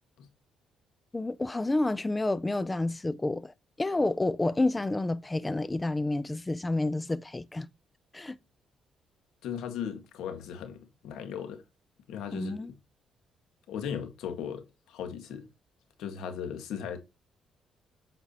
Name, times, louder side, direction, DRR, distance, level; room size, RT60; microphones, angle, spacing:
voice 1, 1.1-7.7 8.1-8.4 12.3-12.7, left 2 dB, 15° left, 0.4 m, -29 dB
voice 2, 9.4-11.6 12.1-12.6 13.7-15.5 16.0-17.0, left 8 dB, 85° left, 1.8 m, -37 dB
8.2 x 6.0 x 3.0 m
cardioid pair, 90°, 0 cm